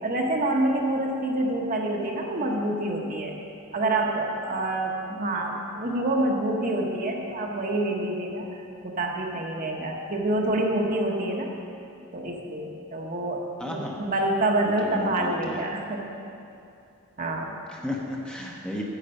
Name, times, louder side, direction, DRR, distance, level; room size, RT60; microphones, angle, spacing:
voice 1, 0.0-3.3 3.7-8.5 8.8-11.5 12.1-13.4 13.7-16.0 17.2-17.6, right 1 dB, 40° right, 0 dB, 1.0 m, -27 dB
voice 2, 13.6-14.0 14.6-15.6 17.7-18.8, left 1 dB, 5° left, -1 dB, 0.8 m, -33 dB
9.9 x 8.1 x 5.4 m, 2.6 s
head